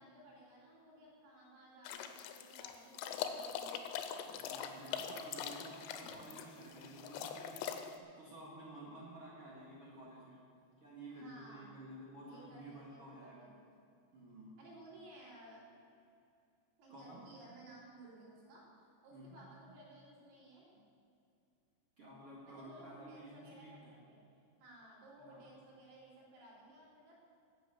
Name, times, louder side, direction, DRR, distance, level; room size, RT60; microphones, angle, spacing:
voice 1, 0.0-3.8 5.9-6.5 11.1-11.8 12.2-13.8 14.6-15.6 16.8-20.8 22.5-24.2 24.6-27.2, right 1 dB, 85° right, -7 dB, 6.2 m, -57 dB
sound 1, 1.9-8.0, left 8 dB, 90° left, 3.3 m, -43 dB
voice 2, 4.3-10.4 10.8-13.5 14.1-14.6 16.9-17.2 19.1-19.4 22.0-23.9 25.3-25.4, right 1 dB, 50° right, -5 dB, 1.7 m, -52 dB
12.0 x 8.4 x 8.0 m, 2.5 s
omnidirectional pair, 5.9 m